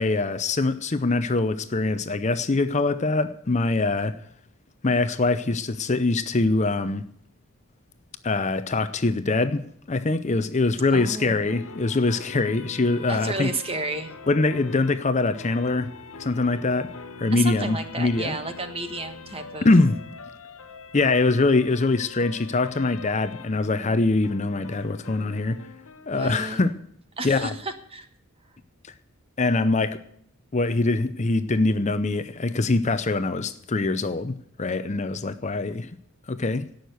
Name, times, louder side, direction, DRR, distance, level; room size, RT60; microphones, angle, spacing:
voice 1, 0.0-4.2 4.8-7.1 8.2-13.5 14.3-15.9 16.2-18.4 19.6-20.0 20.9-25.7 26.1-26.8 27.2-27.5 29.4-30.0 30.5-35.9 36.3-36.7, left 3 dB, 30° left, 0.6 m, -23 dB
voice 2, 10.9-11.5 13.1-14.1 17.3-19.7 26.1-26.6 27.2-28.1, right 2 dB, 25° right, 1.4 m, -32 dB
sound 1, 11.5-26.6, left 3 dB, 65° left, 1.1 m, -43 dB
17.0 x 6.5 x 7.9 m
head